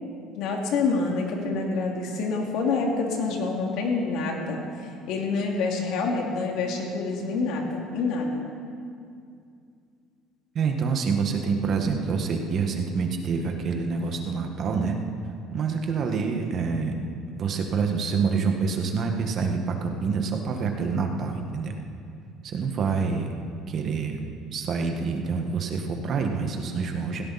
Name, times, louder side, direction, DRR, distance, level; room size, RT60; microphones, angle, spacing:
voice 1, 0.3-4.6 5.1-8.4, left 4 dB, 70° left, 0 dB, 2.7 m, -27 dB
voice 2, 10.5-15.0 15.5-16.9 17.3-21.8 22.4-23.3 23.7-24.2 24.5-27.2, right 5 dB, 45° right, 4 dB, 1.7 m, -27 dB
17.5 x 16.5 x 4.3 m, 2.4 s
cardioid pair, 120°, 0 cm